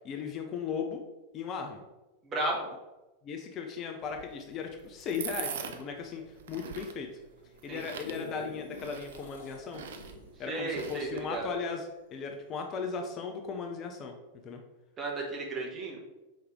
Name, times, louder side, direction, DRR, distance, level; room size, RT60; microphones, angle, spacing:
voice 1, 0.0-1.0 1.3-1.8 3.2-7.1 7.6-9.8 10.4-14.2 14.4-14.6, left 5 dB, 30° left, 4 dB, 0.5 m, -37 dB
voice 2, 2.2-2.7 7.7-7.8 10.5-11.5 15.0-16.0, right 2 dB, 25° right, -1 dB, 1.1 m, -34 dB
sound 1, 4.0-11.5, right 7 dB, 60° right, 0.4 m, -44 dB
sound 2, 7.6-12.3 12.8-12.9, left 2 dB, 60° left, 1.0 m, -47 dB
4.6 x 3.2 x 3.6 m, 1.1 s
figure-of-eight pair, 90°, 0 cm